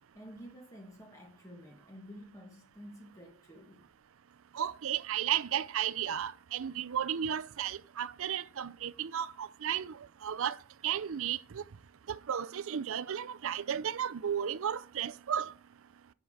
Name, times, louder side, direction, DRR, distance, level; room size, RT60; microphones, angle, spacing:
voice 1, 0.0-3.9, equal, 15° left, 1.5 m, -50 dB
voice 2, 4.5-10.0 10.2-10.6 10.8-11.6 12.1-15.5, right 9 dB, 70° right, 0.5 m, -34 dB
10.5 x 6.0 x 4.8 m
head